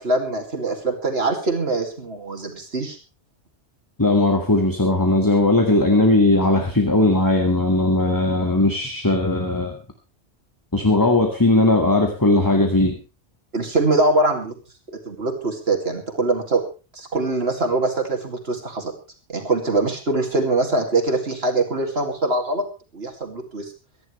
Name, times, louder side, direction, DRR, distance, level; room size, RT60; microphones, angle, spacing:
voice 1, 0.0-3.0 13.5-14.5 14.9-16.6 16.9-18.9 19.3-22.6 22.9-23.7, right 2 dB, 65° right, 2 dB, 2.8 m, -23 dB
voice 2, 4.0-9.8 10.7-13.0, left 2 dB, 20° left, 3 dB, 2.0 m, -18 dB
24.5 x 11.0 x 3.3 m, 0.32 s
omnidirectional pair, 1.1 m